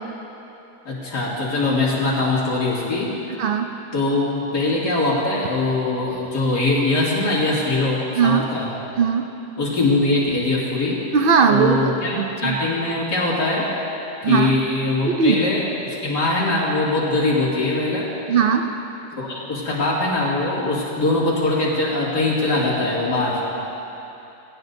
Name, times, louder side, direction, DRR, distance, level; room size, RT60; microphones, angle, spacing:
voice 1, 0.8-3.1 3.9-8.7 9.6-11.0 11.5-13.7 14.2-18.1 19.2-23.4, left 2 dB, 75° left, -6 dB, 3.2 m, -22 dB
voice 2, 9.0-9.3 11.1-12.6 14.2-14.5 15.1-15.5 18.3-18.7, right 6 dB, 85° right, 5 dB, 0.4 m, -19 dB
20.5 x 17.5 x 2.7 m, 3.0 s
omnidirectional pair, 1.8 m